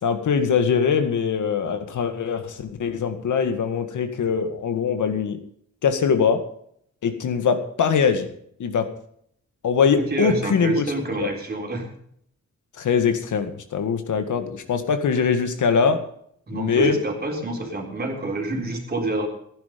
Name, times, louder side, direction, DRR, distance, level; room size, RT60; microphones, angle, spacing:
voice 1, 0.0-5.4 5.8-6.4 7.0-8.3 8.6-8.9 9.6-10.8 11.2-11.3 12.8-16.0 16.5-17.0, left 6 dB, 80° left, 8 dB, 2.0 m, -22 dB
voice 2, 9.9-11.9 16.5-19.3, right 2 dB, 30° right, 1 dB, 3.8 m, -27 dB
15.5 x 10.5 x 5.3 m, 0.67 s
wide cardioid pair, 150°, 30 cm